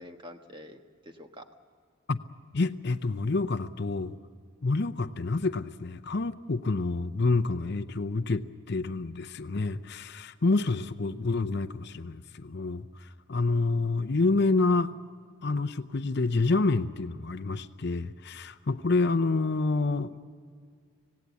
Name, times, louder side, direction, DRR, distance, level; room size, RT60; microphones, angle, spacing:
voice 1, 0.0-1.4 20.1-20.2, left 1 dB, 20° right, 5 dB, 1.3 m, -47 dB
voice 2, 2.5-4.2 4.6-14.9 15.4-20.1, left 3 dB, 50° left, 10 dB, 0.6 m, -28 dB
26.5 x 17.5 x 8.2 m, 2.1 s
head